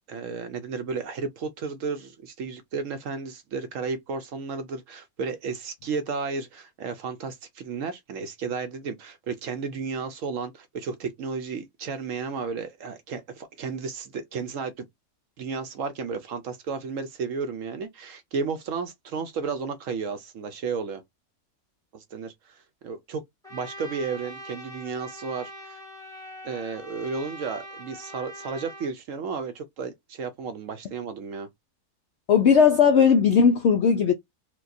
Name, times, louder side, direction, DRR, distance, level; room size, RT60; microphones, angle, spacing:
voice 1, 0.1-14.9 15.4-21.0 21.9-23.2 23.5-25.8 26.4-31.5, right 5 dB, 65° right, 0.9 m, -33 dB
Trumpet, 23.4-28.9, equal, 5° left, 1.0 m, -42 dB
voice 2, 32.3-34.1, left 6 dB, 75° left, 0.6 m, -17 dB
4.3 x 2.3 x 2.6 m
omnidirectional pair, 1.7 m